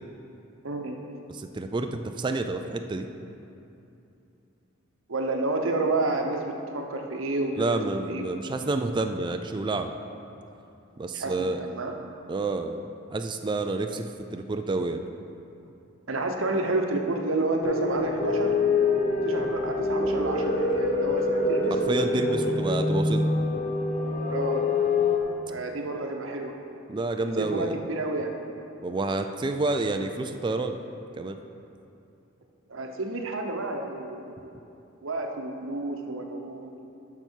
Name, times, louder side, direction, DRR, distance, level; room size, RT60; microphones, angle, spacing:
voice 1, 0.6-1.0 5.1-8.4 11.1-11.9 16.1-18.5 19.2-22.2 24.3-24.7 25.5-26.5 27.4-28.4 32.7-34.3 35.0-36.9, right 2 dB, 75° right, 3 dB, 0.9 m, -30 dB
voice 2, 1.3-3.1 7.5-9.9 11.0-11.6 12.3-12.9 13.1-15.0 21.7-23.3 26.9-27.8 28.8-30.8 31.2-31.4, right 2 dB, 25° right, 6 dB, 0.3 m, -29 dB
sound 1, 17.6-25.2, left 3 dB, 40° left, 0.9 m, -25 dB
12.0 x 5.9 x 4.5 m, 2.8 s
head